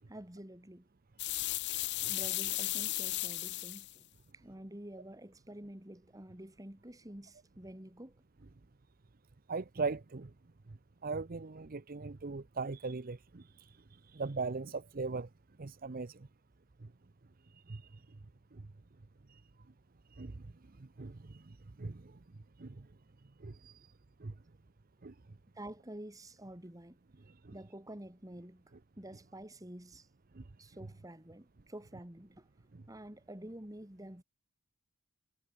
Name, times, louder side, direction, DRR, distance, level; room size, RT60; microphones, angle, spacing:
voice 1, 0.1-0.9 2.1-4.0 4.3-8.2 25.6-27.0 27.5-28.6 29.0-30.1 30.6-32.5 32.9-34.2, right 1 dB, 15° right, 2.0 m, -49 dB
sound 1, 1.2-3.9, left 17 dB, 50° left, 0.9 m, -35 dB
voice 2, 9.5-10.3 10.7-15.3 15.6-16.3 16.8-16.9 17.5-18.2 18.5-18.7 19.3-19.4 20.1-22.2 22.6-22.9 23.4-23.9 24.2-24.3 25.0-25.1 27.3-27.6 30.3-30.4 32.7-32.8, right 4 dB, 40° right, 0.7 m, -41 dB
head